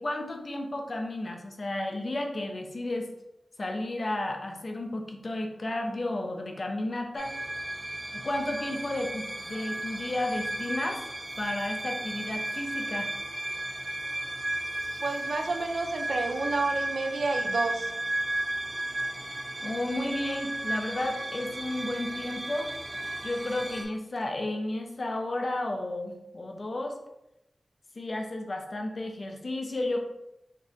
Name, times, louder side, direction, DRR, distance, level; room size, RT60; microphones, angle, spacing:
voice 1, 0.0-3.1 3.6-7.4 8.1-11.0 11.4-13.1 19.6-22.7 23.2-27.0 28.0-30.0, left 1 dB, 50° left, 3 dB, 0.6 m, -32 dB
sound 1, 7.2-23.8, right 1 dB, 60° right, 1.1 m, -34 dB
voice 2, 15.0-17.9, right 3 dB, 75° right, 4 dB, 0.4 m, -30 dB
5.2 x 2.6 x 2.7 m, 0.87 s
cardioid pair, 55°, 0 cm